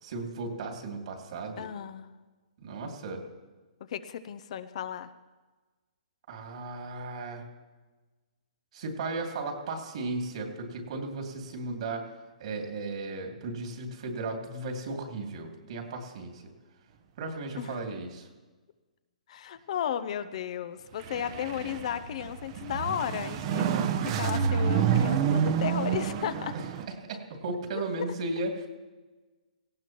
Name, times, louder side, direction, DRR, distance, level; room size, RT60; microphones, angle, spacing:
voice 1, 0.0-1.6 2.6-3.2 6.3-7.4 8.7-12.1 12.4-16.4 17.2-18.3 26.5-26.6 27.0-28.7, right 3 dB, 55° right, 2 dB, 2.6 m, -35 dB
voice 2, 1.6-2.1 3.9-5.1 17.6-17.8 19.3-23.7 24.0-26.5, left 9 dB, 50° left, 13 dB, 0.6 m, -34 dB
sound 1, 20.9-26.9, right 7 dB, 40° right, 0.9 m, -28 dB
18.0 x 15.5 x 3.0 m, 1.3 s
hypercardioid pair, 150°, 4 cm